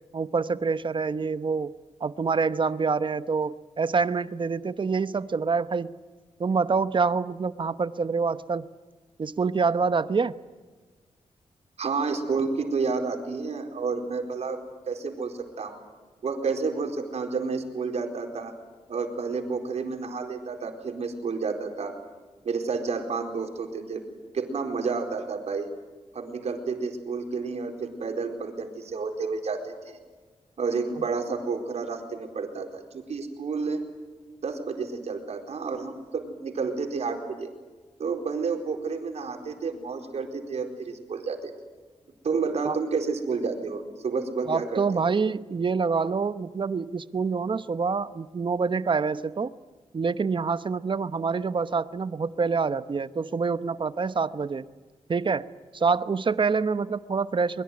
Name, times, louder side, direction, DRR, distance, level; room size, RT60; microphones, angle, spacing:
voice 1, 0.1-1.7 2.0-5.9 6.4-8.7 9.2-10.3 42.6-42.8 44.5-49.5 49.9-54.7 55.1-55.5 55.7-57.6, right 5 dB, 45° right, 14 dB, 1.0 m, -26 dB
voice 2, 11.8-14.6 14.9-15.8 16.2-18.5 18.9-21.9 22.4-24.0 24.3-25.7 26.1-30.0 30.6-33.8 34.4-37.5 38.0-41.5 42.2-45.0, right 4 dB, 65° right, 4 dB, 4.4 m, -30 dB
23.0 x 22.0 x 9.6 m, 1.3 s
cardioid pair, 80°, 12 cm